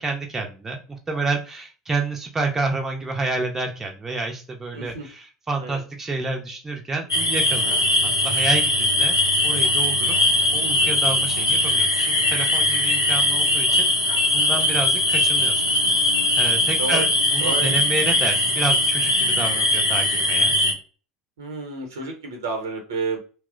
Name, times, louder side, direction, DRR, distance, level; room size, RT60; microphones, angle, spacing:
voice 1, 0.0-9.1 9.4-10.2 10.5-13.9 14.3-15.7 16.4-20.5, right 3 dB, 20° right, 2 dB, 0.5 m, -29 dB
voice 2, 4.7-5.1 5.6-5.8 16.8-17.1 17.4-17.7 21.4-23.2, right 3 dB, 70° right, 3 dB, 0.8 m, -30 dB
sound 1, 7.1-20.7, left 1 dB, 90° left, 0.5 m, -20 dB
2.9 x 2.0 x 2.4 m, 0.36 s
figure-of-eight pair, 70°, 2 cm